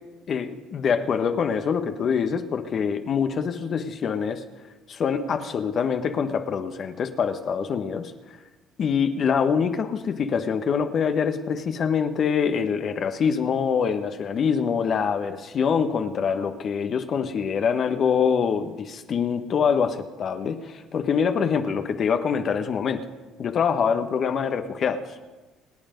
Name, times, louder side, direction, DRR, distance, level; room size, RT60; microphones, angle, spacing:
voice 1, 0.3-4.4 4.9-8.1 8.8-23.0 23.4-25.0, left 6 dB, 50° left, 7 dB, 1.3 m, -25 dB
26.0 x 8.8 x 5.3 m, 1.2 s
hypercardioid pair, 65°, 0 cm